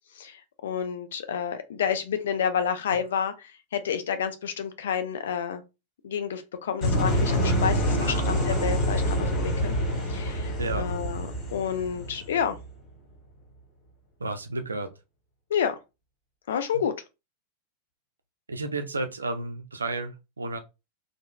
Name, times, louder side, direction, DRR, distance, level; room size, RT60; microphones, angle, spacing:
voice 1, 0.6-3.3 3.7-5.6 6.0-9.7 10.1-12.6 15.5-15.8 16.5-16.9, left 7 dB, 60° left, 0.5 m, -29 dB
sound 1, 6.8-12.7, equal, 30° left, 1.5 m, -26 dB
voice 2, 8.0-8.7 10.6-10.9 14.2-14.9 16.7-16.8 18.5-20.6, right 2 dB, 75° right, 0.5 m, -32 dB
2.9 x 2.2 x 2.3 m
figure-of-eight pair, 90°, 0 cm